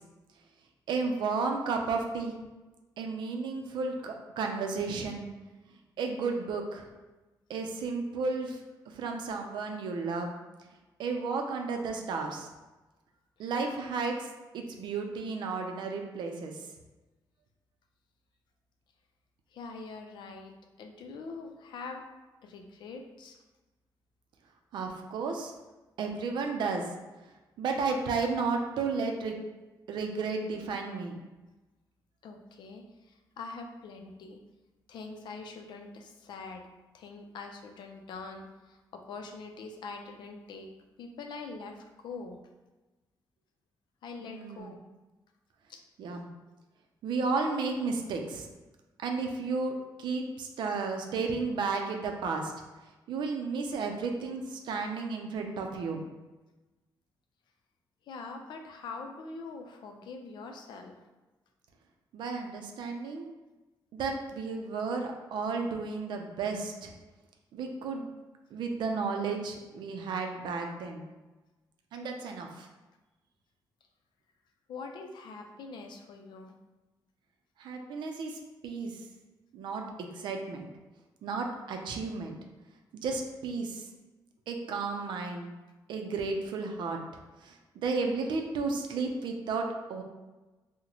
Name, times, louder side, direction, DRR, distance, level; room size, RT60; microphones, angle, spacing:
voice 1, 0.9-2.4 3.0-5.2 6.0-6.9 7.5-8.6 9.0-10.3 11.0-12.5 13.4-14.3 14.5-16.5 24.7-25.5 26.0-26.9 27.6-29.4 29.9-31.2 44.2-44.7 46.0-46.3 47.0-48.5 49.0-52.5 53.1-56.0 62.1-63.3 63.9-66.9 67.5-68.1 68.5-71.0 71.9-72.7 77.6-78.9 79.5-80.7 81.2-82.4 83.0-83.8 84.5-85.5 85.9-87.0 87.4-90.0, right 4 dB, 80° right, 3 dB, 0.4 m, -33 dB
voice 2, 19.5-22.0 22.4-23.4 32.2-34.4 34.9-36.7 36.9-40.7 41.0-42.4 44.0-44.8 45.7-45.8 58.1-60.9 74.7-76.5, left 4 dB, 75° left, 4 dB, 0.4 m, -43 dB
3.9 x 2.1 x 2.9 m, 1.1 s
wide cardioid pair, 165°, 8 cm